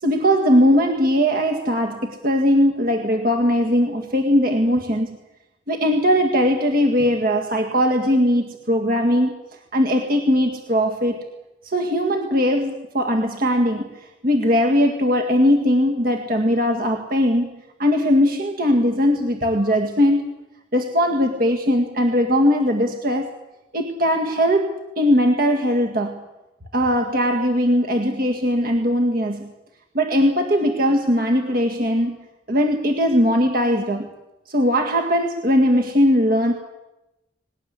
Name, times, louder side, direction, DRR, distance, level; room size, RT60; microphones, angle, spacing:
voice 1, 0.0-5.2 5.7-9.3 9.7-11.2 11.6-13.9 14.2-17.5 17.8-20.3 20.7-23.3 23.7-26.2 26.7-29.5 29.9-32.2 32.5-34.1 34.5-36.5, equal, 50° right, 3 dB, 2.0 m, -19 dB
19.5 x 19.0 x 9.7 m, 0.95 s
head